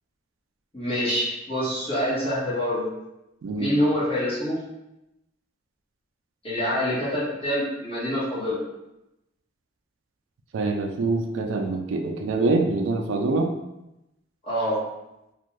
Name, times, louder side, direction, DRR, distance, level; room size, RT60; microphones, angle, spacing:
voice 1, 0.7-2.9 3.5-4.6 6.4-8.6 14.4-14.8, equal, 30° left, -9 dB, 1.2 m, -26 dB
voice 2, 3.4-3.7 10.5-13.5, right 3 dB, 80° right, 3 dB, 0.4 m, -25 dB
2.5 x 2.3 x 3.1 m, 0.91 s
head